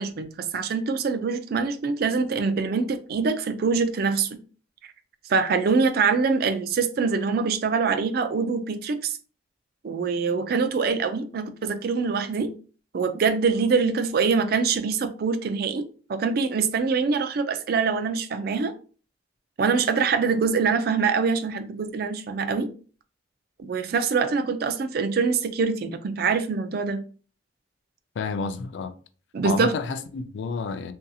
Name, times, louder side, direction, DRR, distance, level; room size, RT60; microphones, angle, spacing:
voice 1, 0.0-4.4 5.3-9.2 9.8-12.5 12.9-18.7 19.6-22.7 23.6-27.0 29.3-29.7, right 5 dB, 55° right, 0.3 m, -24 dB
voice 2, 28.2-28.9 29.4-30.9, left 4 dB, 70° left, 0.3 m, -30 dB
2.6 x 2.6 x 2.3 m
head